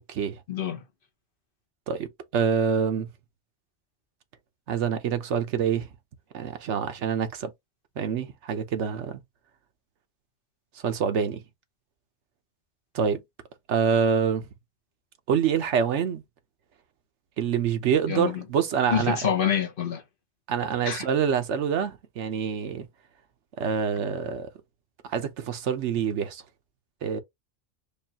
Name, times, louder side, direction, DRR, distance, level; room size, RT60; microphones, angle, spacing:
voice 1, 0.5-0.8 18.1-18.4 18.9-20.0 20.8-21.1, left 8 dB, 55° left, 0.8 m, -27 dB
voice 2, 1.9-3.1 4.7-5.9 6.3-7.5 8.0-9.2 10.8-11.4 12.9-13.2 13.7-14.5 15.3-16.2 17.4-19.2 20.5-22.9 23.6-24.5 25.1-26.4 27.0-27.2, right 7 dB, 75° right, 1.0 m, -26 dB
5.1 x 2.3 x 2.8 m
omnidirectional pair, 1.2 m